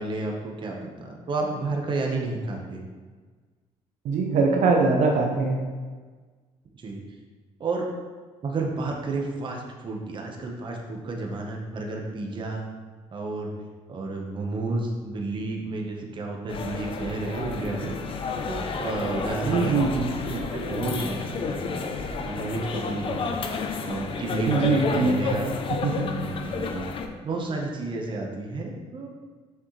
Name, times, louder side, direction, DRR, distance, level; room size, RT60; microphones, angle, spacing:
voice 1, 0.0-2.8 6.7-7.0 7.6-7.9 8.4-12.6 13.1-13.5 13.9-18.0 18.4-19.9 20.4-21.9 22.2-23.3 23.8-25.5 25.9-26.9 27.2-29.1, right 3 dB, 40° right, 0 dB, 1.3 m, -31 dB
voice 2, 4.0-5.6 19.4-20.4 24.5-25.5 25.8-26.1, right 3 dB, 70° right, 1 dB, 0.9 m, -23 dB
sound 1, 16.5-27.1, left 4 dB, 45° left, 0.7 m, -31 dB
7.0 x 6.5 x 3.3 m, 1.4 s
cardioid pair, 105°, 13 cm